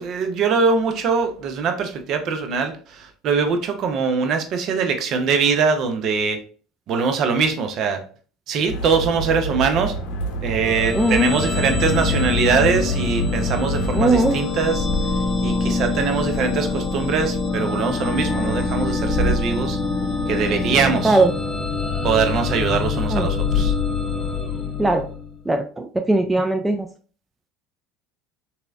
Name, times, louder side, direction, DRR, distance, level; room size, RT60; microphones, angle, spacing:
voice 1, 0.0-6.4 6.9-8.0 8.5-9.9 10.4-14.9 15.4-19.8 20.3-21.2 22.0-23.7, right 5 dB, 55° right, 6 dB, 0.6 m, -22 dB
sound 1, 8.7-14.4, right 2 dB, 70° left, 0.7 m, -28 dB
sound 2, 10.6-25.4, left 4 dB, 30° left, 0.6 m, -24 dB
voice 2, 10.9-11.3 13.9-14.4 21.0-21.3 23.1-23.3 24.8-25.1 25.5-26.9, right 2 dB, 10° right, 6 dB, 0.3 m, -19 dB
2.9 x 2.8 x 2.3 m, 0.41 s
hypercardioid pair, 75°, 0 cm